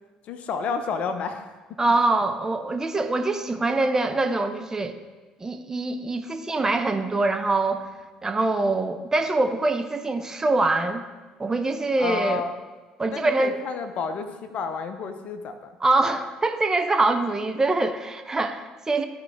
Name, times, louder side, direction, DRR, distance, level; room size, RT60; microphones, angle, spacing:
voice 1, 0.3-1.5 1.9-2.0 12.0-12.6 13.1-15.7, left 5 dB, 50° left, 9 dB, 0.6 m, -30 dB
voice 2, 1.8-4.9 5.4-7.9 8.2-11.0 11.4-12.4 13.0-13.5 15.8-19.1, right 2 dB, 20° right, 6 dB, 0.7 m, -24 dB
12.5 x 4.6 x 3.4 m, 1.3 s
figure-of-eight pair, 55°, 3 cm